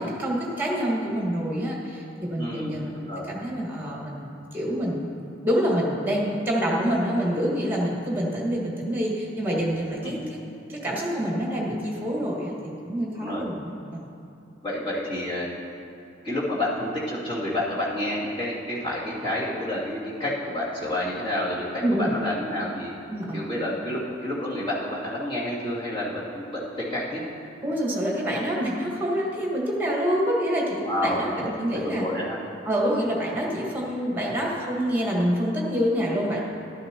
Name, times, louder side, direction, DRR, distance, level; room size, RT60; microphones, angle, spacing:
voice 1, 0.0-2.9 3.3-5.1 5.4-10.4 10.7-14.0 21.8-22.1 23.1-23.4 27.6-32.1 32.7-36.4, equal, 10° right, -3 dB, 1.8 m, -26 dB
voice 2, 2.3-3.3 10.0-10.2 13.2-13.4 14.6-15.5 16.2-22.9 23.3-27.2 30.8-32.4, left 1 dB, 25° left, -9 dB, 2.8 m, -29 dB
12.5 x 12.0 x 3.0 m, 2.8 s
head